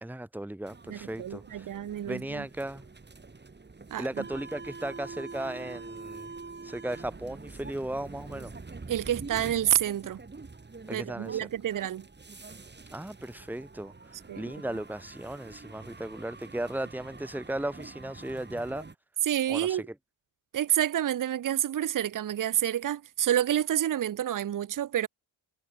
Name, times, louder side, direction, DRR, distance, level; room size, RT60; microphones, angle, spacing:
voice 1, 0.0-1.7 2.0-2.8 4.0-6.3 6.6-8.5 10.9-11.5 12.9-18.8 19.5-19.8, right 1 dB, 5° right, 1.6 m, -36 dB
sound 1, 0.6-18.9, right 3 dB, 20° right, 4.1 m, -45 dB
voice 2, 0.9-2.4 3.9-4.2 8.9-10.2 10.9-12.1 14.3-14.5 19.2-19.8 20.5-25.1, right 11 dB, 40° right, 0.7 m, -29 dB
wide cardioid pair, 165°, 50 cm